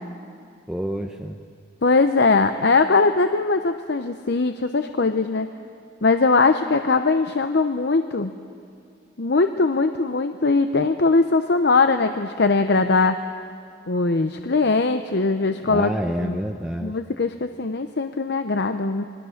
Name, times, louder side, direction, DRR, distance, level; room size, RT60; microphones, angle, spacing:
voice 1, 0.7-1.4 15.6-17.0, equal, 5° right, 3 dB, 0.7 m, -28 dB
voice 2, 1.8-5.5 6.0-8.3 9.2-13.2 13.9-15.9 16.2-16.4 16.8-19.0, left 3 dB, 55° left, 8 dB, 0.7 m, -20 dB
27.0 x 21.0 x 6.5 m, 2.3 s
head